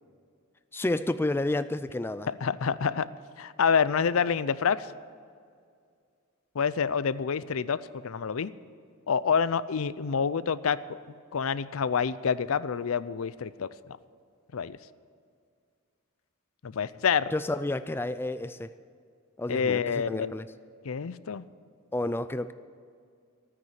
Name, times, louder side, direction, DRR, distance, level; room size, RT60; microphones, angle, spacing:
voice 1, 0.7-2.3 17.3-18.7 19.4-20.5 21.9-22.5, left 2 dB, 10° left, 12 dB, 0.3 m, -30 dB
voice 2, 2.3-3.1 3.4-4.9 6.5-8.5 9.1-11.0 11.3-13.7 14.5-14.8 16.6-17.3 19.5-20.3 20.8-21.5, left 6 dB, 75° left, 16 dB, 0.5 m, -27 dB
13.5 x 9.8 x 9.3 m, 2.2 s
head